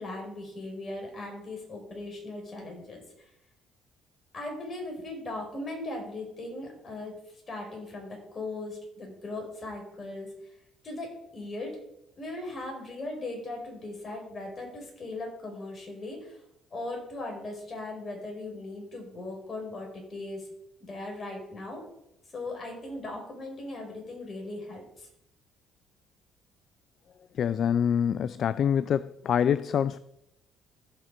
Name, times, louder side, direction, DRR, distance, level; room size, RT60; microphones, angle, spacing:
voice 1, 0.0-3.0 4.3-7.1 7.5-10.3 10.8-11.7 12.2-16.4 16.7-20.5 20.9-21.9 22.3-25.1, left 2 dB, 40° left, 1 dB, 5.4 m, -38 dB
voice 2, 27.4-30.0, left 8 dB, 60° left, 17 dB, 0.4 m, -25 dB
15.0 x 6.3 x 5.2 m, 0.83 s
supercardioid pair, 65°, 0 cm